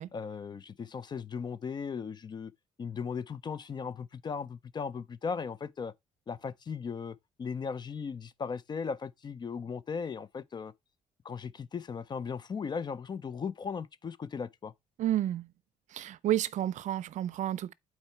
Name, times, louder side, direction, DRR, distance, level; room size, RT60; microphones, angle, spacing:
voice 1, 0.1-2.5 2.8-5.9 6.3-10.7 11.2-14.7, left 6 dB, 30° left, 0.5 m, -37 dB
voice 2, 15.0-15.5 15.9-17.7, right 12 dB, 60° right, 0.5 m, -31 dB
8.7 x 4.4 x 4.4 m
cardioid pair, 135°, 14 cm